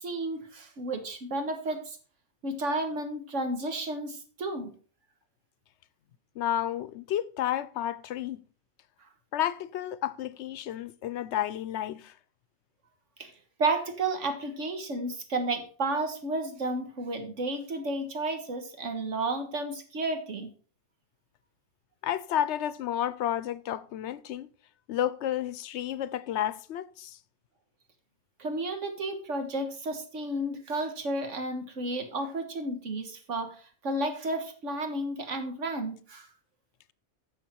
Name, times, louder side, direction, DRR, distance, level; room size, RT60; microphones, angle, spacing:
voice 1, 0.0-2.0 2.4-4.7 13.2-13.3 13.6-20.5 28.4-33.6 33.8-36.3, right 2 dB, 80° right, 1.8 m, -32 dB
voice 2, 6.4-8.4 9.3-12.1 22.0-24.5 24.9-27.2, left 11 dB, 70° left, 0.8 m, -31 dB
9.7 x 6.4 x 4.5 m
omnidirectional pair, 1.2 m